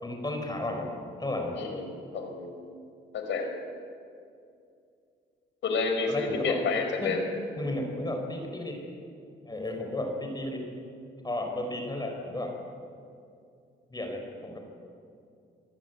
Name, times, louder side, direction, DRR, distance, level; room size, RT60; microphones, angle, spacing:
voice 1, 0.0-0.9 1.2-1.6 6.1-6.6 7.0-7.1 7.6-8.8 9.5-10.6 11.2-12.5 13.9-14.6, left 1 dB, 20° left, 3 dB, 4.7 m, -33 dB
voice 2, 1.5-2.6 3.1-3.5 5.6-7.2, left 4 dB, 70° left, 5 dB, 5.3 m, -30 dB
26.0 x 18.5 x 8.1 m, 2.4 s
cardioid pair, 90°, 20 cm